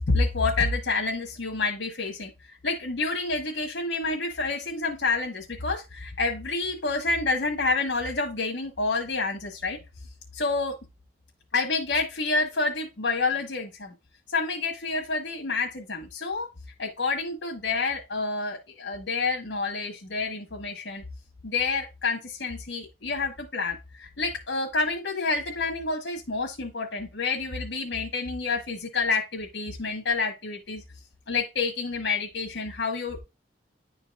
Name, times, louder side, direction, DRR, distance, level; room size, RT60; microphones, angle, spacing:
voice 1, 0.1-9.8 10.3-10.8 11.5-13.9 14.3-16.5 16.8-21.0 21.4-30.8 31.3-33.2, left 3 dB, 75° left, 1.2 m, -28 dB
10.5 x 4.0 x 2.3 m
head